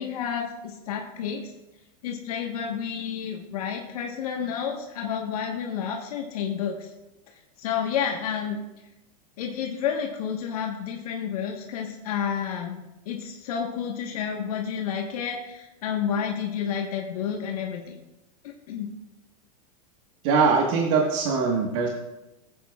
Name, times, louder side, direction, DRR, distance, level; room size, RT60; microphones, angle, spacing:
voice 1, 0.0-1.5 2.0-6.9 7.6-8.6 9.4-12.8 13.0-18.0 18.7-18.9, left 7 dB, 80° left, 1 dB, 1.3 m, -30 dB
voice 2, 20.2-21.9, right 5 dB, 55° right, -1 dB, 1.4 m, -22 dB
15.5 x 8.6 x 2.4 m, 0.98 s
supercardioid pair, 140°, 19 cm